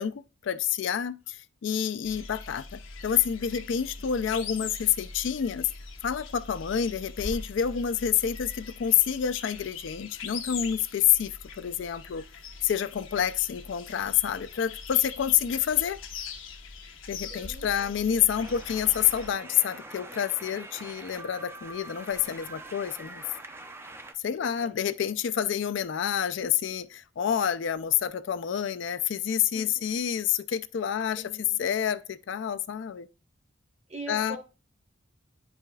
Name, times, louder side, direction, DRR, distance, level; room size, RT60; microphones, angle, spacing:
voice 1, 0.0-5.7 6.0-12.2 12.6-16.0 17.1-23.2 24.2-31.2 31.6-33.1 34.1-34.4, left 9 dB, 65° left, 0.4 m, -28 dB
sound 1, 2.0-19.3, left 5 dB, 90° left, 1.1 m, -42 dB
voice 2, 17.2-18.6 24.4-24.8 29.5-29.8 31.2-31.6 33.9-34.4, right 2 dB, 35° right, 1.0 m, -44 dB
sound 2, 18.4-24.1, right 2 dB, 10° right, 0.5 m, -44 dB
9.7 x 4.9 x 2.3 m
head